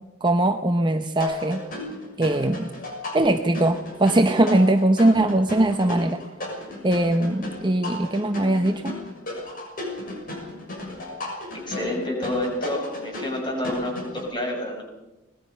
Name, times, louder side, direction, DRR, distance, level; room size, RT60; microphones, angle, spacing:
voice 1, 0.2-1.6 2.2-2.7 3.1-6.2 6.8-8.9, right 1 dB, 20° right, 6 dB, 0.8 m, -21 dB
sound 1, 1.2-14.3, left 2 dB, 40° left, 6.4 m, -34 dB
voice 2, 11.5-14.8, left 1 dB, 20° left, 0 dB, 6.8 m, -28 dB
24.5 x 19.5 x 5.6 m, 0.98 s
head